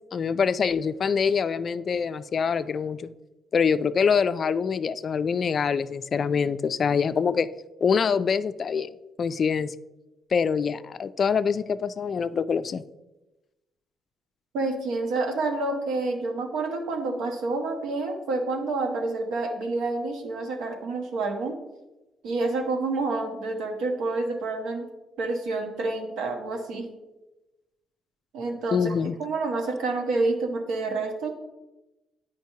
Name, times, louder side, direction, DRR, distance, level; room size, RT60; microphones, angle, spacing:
voice 1, 0.1-3.1 3.5-7.5 7.8-8.9 9.2-9.7 10.3-12.8 28.7-29.2, left 6 dB, 50° left, 13 dB, 0.3 m, -25 dB
voice 2, 14.5-21.6 22.2-24.9 25.2-26.9 28.3-28.9 29.2-31.3, right 3 dB, 90° right, 3 dB, 1.0 m, -28 dB
9.0 x 5.1 x 2.8 m, 1.0 s
cardioid pair, 90°, 0 cm